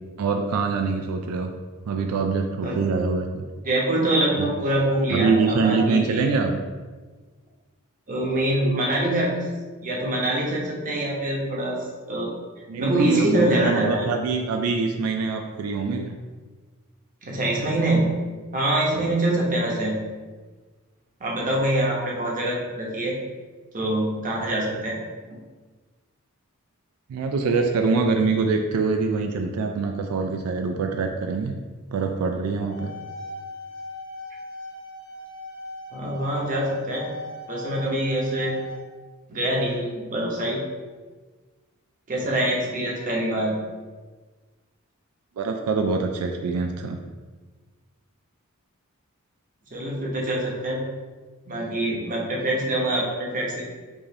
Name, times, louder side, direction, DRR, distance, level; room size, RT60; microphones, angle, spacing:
voice 1, 0.2-1.5 1.9-3.5 4.4-4.5 5.1-6.6 12.7-16.2 18.9-19.1 27.1-31.5 31.9-32.9 45.4-47.0, right 4 dB, 85° right, 4 dB, 0.3 m, -24 dB
voice 2, 3.6-6.2 8.1-9.3 9.8-12.3 12.8-14.1 17.2-18.1 18.5-20.0 21.2-23.2 23.7-25.0 25.3-25.4 35.9-37.1 37.5-38.6 39.3-40.6 42.1-43.6 49.7-50.9 51.5-53.6, right 1 dB, 40° right, -3 dB, 0.8 m, -24 dB
sound 1, 32.5-38.8, left 2 dB, 75° left, 0.8 m, -39 dB
4.8 x 2.5 x 2.7 m, 1.4 s
head